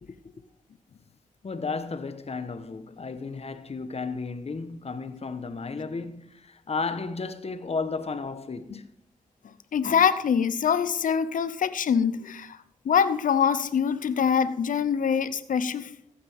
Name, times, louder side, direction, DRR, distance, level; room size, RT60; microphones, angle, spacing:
voice 1, 0.0-0.3 1.4-8.9, left 4 dB, 50° left, 1.1 m, -33 dB
voice 2, 9.7-12.6 12.8-15.9, left 7 dB, 80° left, 0.7 m, -24 dB
15.5 x 8.8 x 3.6 m
cardioid pair, 50°, 14 cm